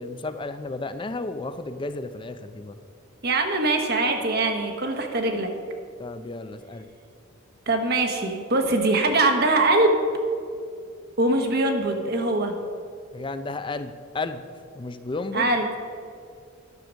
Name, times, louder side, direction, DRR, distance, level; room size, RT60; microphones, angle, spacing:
voice 1, 0.0-2.7 6.0-6.9 13.1-14.4 14.8-15.5, left 3 dB, 25° left, 11 dB, 0.4 m, -33 dB
voice 2, 3.2-5.5 7.7-10.0 11.2-12.5 15.3-15.7, right 2 dB, 50° right, 4 dB, 1.1 m, -22 dB
10.5 x 6.6 x 6.3 m, 2.3 s
head